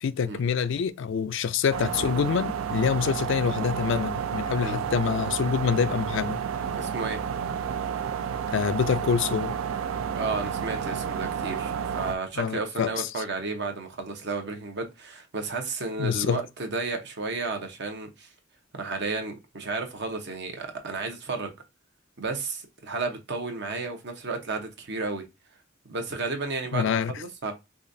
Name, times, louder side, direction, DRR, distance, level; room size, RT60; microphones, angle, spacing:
voice 1, 0.0-6.4 8.5-9.6 12.4-13.1 16.0-16.4 26.7-27.1, left 6 dB, 65° left, 0.4 m, -26 dB
sound 1, 1.7-12.2, right 7 dB, 85° right, 0.4 m, -31 dB
voice 2, 6.8-7.2 10.1-18.3 18.7-21.5 22.2-25.2 25.9-27.5, right 3 dB, 60° right, 0.9 m, -32 dB
4.9 x 2.4 x 2.6 m
head